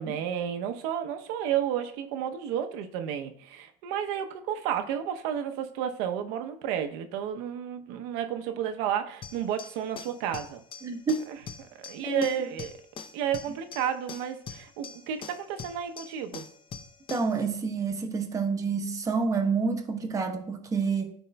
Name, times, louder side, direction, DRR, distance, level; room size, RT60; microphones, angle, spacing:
voice 1, 0.0-10.6 11.3-11.4 11.9-12.7 13.1-16.5, right 9 dB, 85° right, 0.7 m, -31 dB
sound 1, 9.2-17.4, left 6 dB, 35° left, 0.6 m, -44 dB
voice 2, 10.8-11.2 12.0-12.3 17.1-21.1, right 4 dB, 25° right, 0.9 m, -28 dB
13.0 x 4.5 x 2.2 m
cardioid pair, 130°, 14 cm